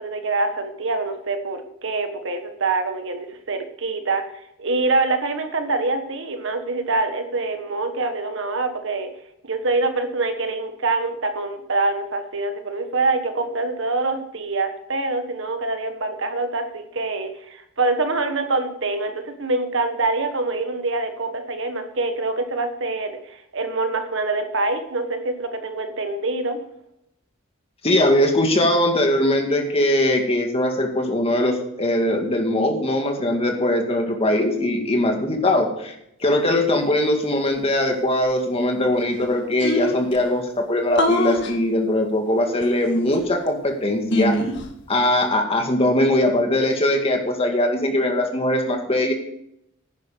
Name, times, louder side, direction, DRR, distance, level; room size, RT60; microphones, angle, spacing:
voice 1, 0.0-9.1 9.4-26.6, right 3 dB, 65° right, 7 dB, 1.5 m, -25 dB
voice 2, 27.8-35.9 36.2-44.4 44.9-49.1, left 1 dB, 30° left, 3 dB, 2.1 m, -21 dB
sound 1, 38.9-39.0 39.2-39.3 39.6-40.2 41.0-41.5 42.6-43.5 44.1-44.7, left 1 dB, 60° left, 1.7 m, -24 dB
10.5 x 10.5 x 5.2 m, 0.76 s
head